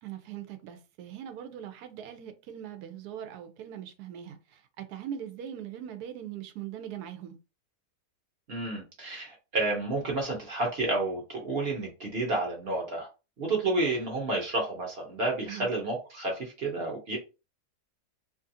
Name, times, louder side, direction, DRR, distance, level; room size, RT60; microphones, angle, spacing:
voice 1, 0.0-7.4 15.5-15.7, right 10 dB, 80° right, 1.1 m, -41 dB
voice 2, 8.5-13.1 13.4-17.2, right 2 dB, 50° right, 0.9 m, -30 dB
2.7 x 2.5 x 2.6 m
omnidirectional pair, 1.7 m